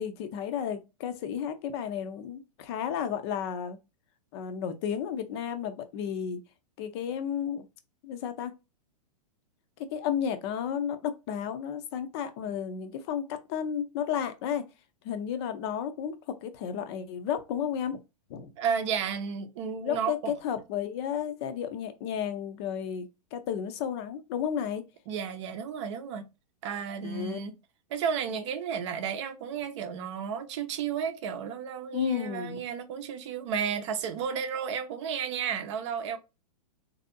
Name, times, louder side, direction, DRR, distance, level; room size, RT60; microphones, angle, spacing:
voice 1, 0.0-3.8 4.3-6.4 6.8-7.7 8.0-8.5 9.9-14.7 15.0-16.2 16.4-18.0 18.3-18.5 19.8-24.8 27.0-27.4 31.9-32.6, left 8 dB, 40° left, 0.6 m, -32 dB
voice 2, 18.6-20.3 25.1-26.3 26.6-27.5 27.9-36.2, right 7 dB, 45° right, 0.6 m, -32 dB
3.3 x 2.7 x 2.6 m
figure-of-eight pair, 105°, 21 cm